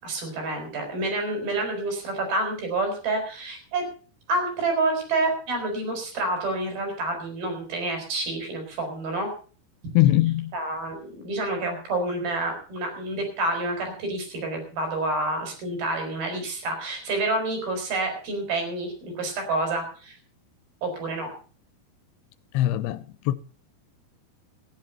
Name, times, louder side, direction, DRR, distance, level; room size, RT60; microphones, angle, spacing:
voice 1, 0.0-3.9 4.3-9.3 10.5-20.2 20.8-21.3, right 2 dB, 65° right, 6.0 m, -28 dB
voice 2, 9.9-10.5 22.5-23.3, left 15 dB, 85° left, 2.8 m, -21 dB
14.0 x 11.0 x 5.8 m
omnidirectional pair, 4.6 m